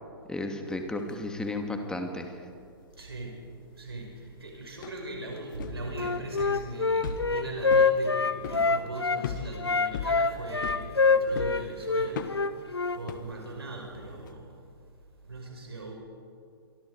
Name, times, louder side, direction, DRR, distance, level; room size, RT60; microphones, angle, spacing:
voice 1, 0.3-2.3, left 2 dB, 5° left, 4 dB, 2.5 m, -33 dB
sound 1, 0.7-1.1 1.4-1.9 2.3-14.3, left 7 dB, 50° left, 1.6 m, -40 dB
voice 2, 3.0-3.5 3.7-12.5 12.9-14.7 15.2-15.9, right 2 dB, 75° right, 1 dB, 5.7 m, -39 dB
Wind instrument woodwind instrument, 5.9-9.2 9.6-13.0, left 4 dB, 80° left, 1.1 m, -25 dB
27.5 x 24.0 x 5.0 m, 2.3 s
figure-of-eight pair, 115°, 13 cm